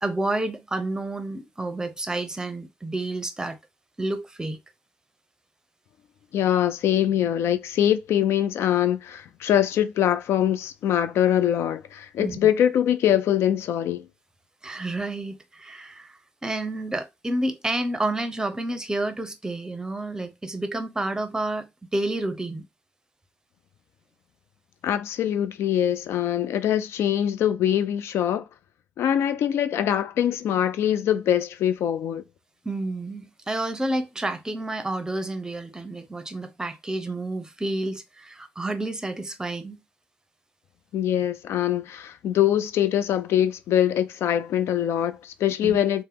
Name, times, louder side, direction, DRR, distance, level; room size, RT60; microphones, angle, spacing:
voice 1, 0.0-3.6 4.0-4.6 12.2-12.4 14.6-22.6 32.6-39.8 45.6-45.8, right 2 dB, 15° right, 0.5 m, -30 dB
voice 2, 6.3-14.1 24.8-28.5 29.0-32.2 40.9-46.0, left 10 dB, 85° left, 0.4 m, -23 dB
2.9 x 2.0 x 3.4 m
cardioid pair, 95°, 4 cm